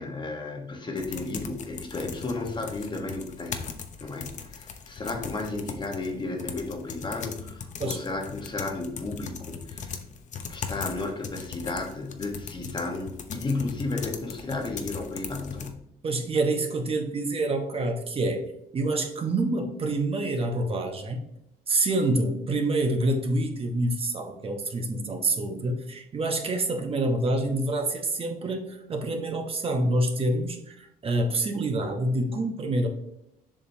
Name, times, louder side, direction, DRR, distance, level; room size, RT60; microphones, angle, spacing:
voice 1, 0.0-3.7 4.0-10.0 10.5-15.8, left 3 dB, 25° left, 2 dB, 1.2 m, -33 dB
sound 1, 1.0-15.7, left 6 dB, 45° left, 0.8 m, -39 dB
voice 2, 16.0-18.4 18.7-21.2 21.7-32.9, right 2 dB, 35° right, 4 dB, 0.9 m, -27 dB
7.3 x 5.1 x 2.7 m, 0.80 s
cardioid pair, 110°, 17 cm